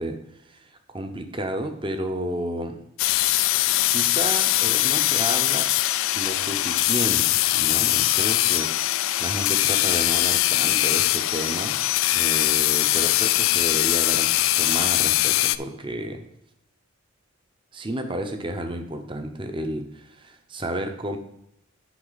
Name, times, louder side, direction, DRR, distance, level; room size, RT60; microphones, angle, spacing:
voice 1, 0.0-2.8 3.9-5.7 6.1-8.7 9.2-11.8 12.1-16.2 17.7-21.2, right 1 dB, 25° right, 6 dB, 0.8 m, -32 dB
sound 1, 3.0-15.6, left 16 dB, 70° left, 0.3 m, -22 dB
9.4 x 5.6 x 4.1 m, 0.77 s
head